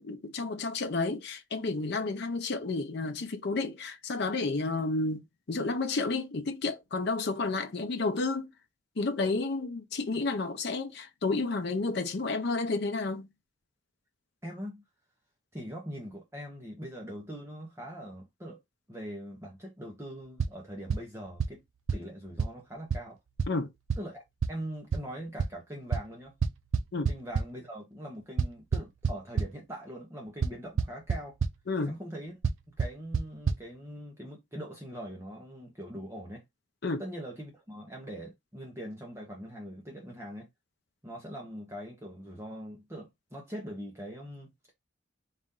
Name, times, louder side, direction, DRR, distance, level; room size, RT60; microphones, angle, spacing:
voice 1, 0.0-5.2 5.5-8.5 9.0-13.3 23.5-23.7 26.9-27.1 31.7-31.9 36.8-37.0, left 3 dB, 55° left, 0.5 m, -31 dB
voice 2, 14.4-14.8 15.5-18.6 18.9-21.6 21.9-23.2 24.0-24.2 24.5-26.4 27.1-31.4 31.9-32.4 32.7-36.4 37.0-40.5 41.0-44.7, equal, 15° right, 0.8 m, -42 dB
sound 1, 20.4-20.5 20.9-21.0 21.4-21.5 21.9-22.0 22.4-22.5 22.9-23.0 23.4-23.5 23.9-24.0 24.4-24.5 24.9-25.0 25.4-25.5 25.9-26.0 26.4-27.4 28.4-29.5 30.4-30.5 30.8-31.2 31.4-31.5 32.4-32.5 32.8-32.9 33.1-33.2 33.5-33.6, right 5 dB, 75° right, 0.5 m, -26 dB
4.1 x 2.5 x 3.6 m
head